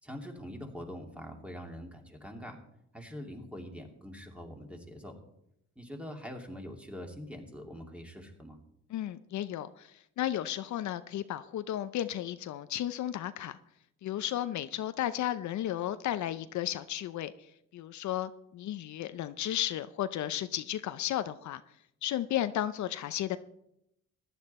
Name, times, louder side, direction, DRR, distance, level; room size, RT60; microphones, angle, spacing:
voice 1, 0.0-2.6 2.9-5.1 5.8-8.6, equal, 5° right, 2 dB, 2.6 m, -44 dB
voice 2, 8.9-13.6 14.0-21.6 22.0-23.4, left 12 dB, 70° left, 12 dB, 0.6 m, -34 dB
15.0 x 11.0 x 4.2 m, 0.78 s
cardioid pair, 90°, 30 cm